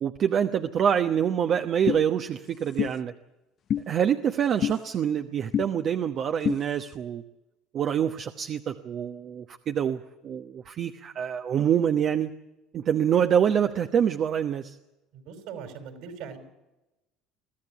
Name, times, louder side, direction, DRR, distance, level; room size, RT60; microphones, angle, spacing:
voice 1, 0.0-3.1 3.9-7.2 7.7-12.3 12.7-14.8, right 8 dB, 50° right, 6 dB, 1.1 m, -26 dB
sound 1, 1.9-2.0 2.8-2.9 3.7-3.8 4.6-4.8 5.5-5.7 6.4-6.6, left 9 dB, 50° left, 0.7 m, -25 dB
voice 2, 15.1-16.4, right 7 dB, 70° right, 6 dB, 5.0 m, -40 dB
23.0 x 15.0 x 9.0 m, 0.99 s
hypercardioid pair, 75°, 0 cm